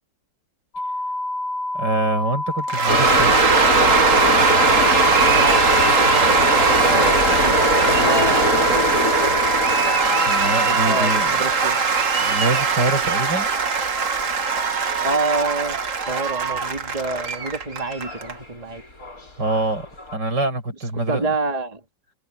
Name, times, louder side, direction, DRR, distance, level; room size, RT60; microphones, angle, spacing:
sound 1, 0.7-11.3, left 1 dB, 35° left, 2.0 m, -27 dB
voice 1, 1.7-3.3 10.2-11.3 12.2-13.5 19.4-19.9 20.1-21.3, right 2 dB, 75° right, 7.6 m, -25 dB
Cheering / Applause / Crowd, 2.7-18.3, right 5 dB, 45° right, 1.8 m, -20 dB
sound 2, 2.9-17.7 18.0-18.4 18.8-20.2, left 1 dB, 50° left, 5.5 m, -24 dB
voice 2, 5.3-5.6 6.1-6.4 6.7-7.6 8.0-8.9 10.6-11.1 11.4-11.8 15.0-15.8 16.1-18.8 21.1-21.8, right 3 dB, 20° right, 2.1 m, -27 dB
omnidirectional pair, 1.9 m